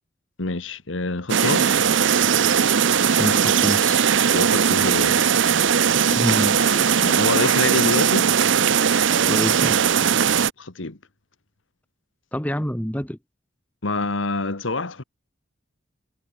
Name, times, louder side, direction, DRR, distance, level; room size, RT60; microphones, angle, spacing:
voice 1, 0.4-1.8 4.3-5.2 7.0-8.3 10.6-11.0 13.8-15.0, left 2 dB, 75° left, 1.7 m, -26 dB
sound 1, 1.3-10.5, right 7 dB, 70° right, 0.7 m, -19 dB
voice 2, 3.1-4.0 6.1-6.7 9.3-9.9 12.3-13.2, equal, 10° left, 1.8 m, -26 dB
sound 2, 6.5-9.2, left 4 dB, 40° left, 7.0 m, -42 dB
head